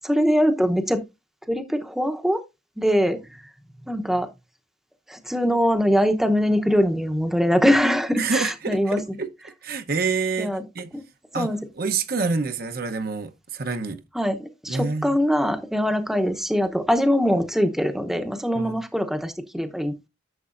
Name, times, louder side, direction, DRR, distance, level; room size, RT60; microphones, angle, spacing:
voice 1, 0.1-1.0 1.5-2.4 2.8-3.4 3.9-4.3 5.1-9.2 10.4-10.6 10.9-11.0 11.3-11.6 14.1-20.1, equal, ahead, 0.8 m, -22 dB
voice 2, 8.1-9.3 9.6-10.9 11.3-11.5 11.8-14.0 14.7-15.2 18.5-18.8, right 4 dB, 55° right, 0.8 m, -27 dB
11.0 x 6.7 x 2.5 m
head